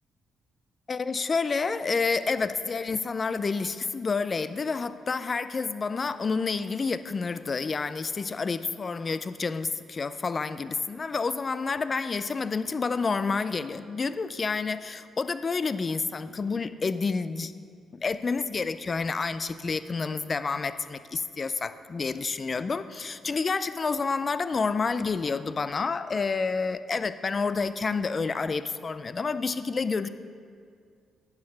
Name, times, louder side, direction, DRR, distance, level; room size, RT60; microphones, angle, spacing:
voice 1, 0.9-17.5 18.0-30.1, left 4 dB, 35° left, 13 dB, 0.3 m, -29 dB
9.5 x 4.4 x 5.6 m, 2.2 s
cardioid pair, 90°, 0 cm